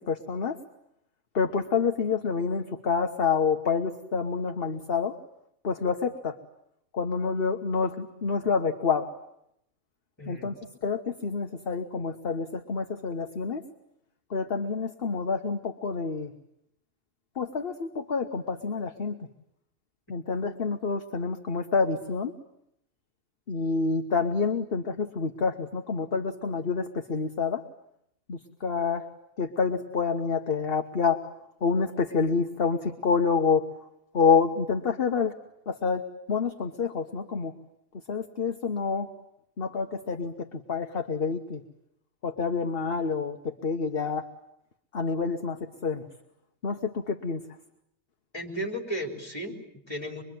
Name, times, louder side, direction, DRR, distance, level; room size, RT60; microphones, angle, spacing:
voice 1, 0.1-0.6 1.3-5.1 5.6-6.4 6.9-9.1 10.3-10.5 10.8-13.6 14.3-16.3 17.4-19.2 20.1-22.3 23.5-27.6 28.3-29.1 29.4-31.2 31.6-33.7 34.1-35.3 35.7-37.5 38.1-39.1 39.6-41.6 42.2-44.3 44.9-46.0 46.6-47.4, left 5 dB, 45° left, 5 dB, 1.4 m, -28 dB
voice 2, 10.2-10.6 48.3-50.2, equal, 20° left, 2 dB, 4.7 m, -35 dB
25.0 x 23.0 x 9.3 m, 0.77 s
omnidirectional pair, 1.4 m